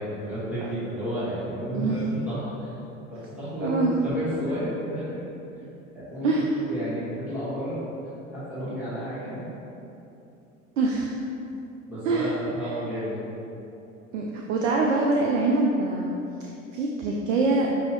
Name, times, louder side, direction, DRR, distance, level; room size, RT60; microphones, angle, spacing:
voice 1, 0.0-2.7 3.1-5.2 5.9-6.3 6.7-7.8 8.3-9.5 11.9-13.2, equal, 5° right, -13 dB, 1.2 m, -32 dB
voice 2, 3.6-3.9 6.2-6.6 10.8-11.1 12.0-12.3 14.1-16.2 16.4-17.7, right 3 dB, 70° right, -1 dB, 0.5 m, -24 dB
5.3 x 2.7 x 3.0 m, 2.9 s
figure-of-eight pair, 70°, 39 cm